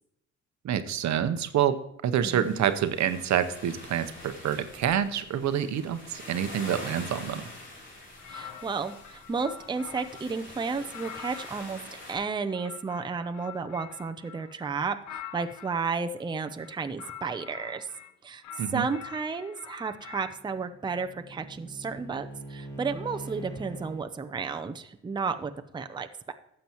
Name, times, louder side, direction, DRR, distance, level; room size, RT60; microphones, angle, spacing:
voice 1, 0.6-7.4 18.6-18.9, right 9 dB, 65° right, 11 dB, 0.8 m, -27 dB
voice 2, 2.2-2.6 8.3-11.8 12.1-17.9 18.2-18.4 18.7-26.3, right 5 dB, 15° right, 7 dB, 0.6 m, -33 dB
sound 1, 2.4-12.2, left 1 dB, 40° left, 3.3 m, -45 dB
sound 2, 8.2-10.3 10.8-15.9 16.5-18.1 18.4-20.4, left 9 dB, 80° left, 0.9 m, -45 dB
Bowed string instrument, 20.0-24.1, right 2 dB, 10° left, 1.6 m, -43 dB
12.5 x 7.8 x 3.0 m, 0.79 s
cardioid pair, 90°, 30 cm